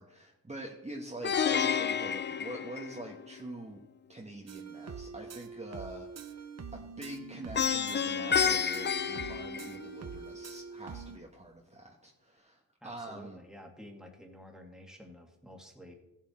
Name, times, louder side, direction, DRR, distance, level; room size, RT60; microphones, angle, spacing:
voice 1, 0.0-3.8 4.1-13.4, right 1 dB, 20° right, -1 dB, 1.4 m, -45 dB
Plucked string instrument, 1.2-3.4 7.5-10.2, left 7 dB, 30° left, 0.4 m, -30 dB
sound 1, 4.5-11.2, right 5 dB, 45° right, 0.8 m, -44 dB
voice 2, 12.8-15.9, left 1 dB, ahead, 2 dB, 2.1 m, -51 dB
15.0 x 7.5 x 4.4 m, 0.90 s
cardioid pair, 80°, 37 cm